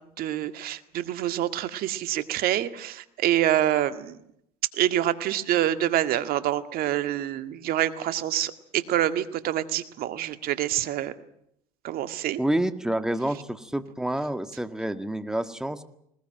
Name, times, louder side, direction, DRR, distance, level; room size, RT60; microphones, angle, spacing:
voice 1, 0.2-4.2 4.7-11.1 11.8-12.4, right 12 dB, 55° right, 11 dB, 1.9 m, -26 dB
voice 2, 12.4-15.8, right 1 dB, 5° right, 10 dB, 1.9 m, -28 dB
20.5 x 20.0 x 9.1 m, 0.74 s
hypercardioid pair, 85°, 18 cm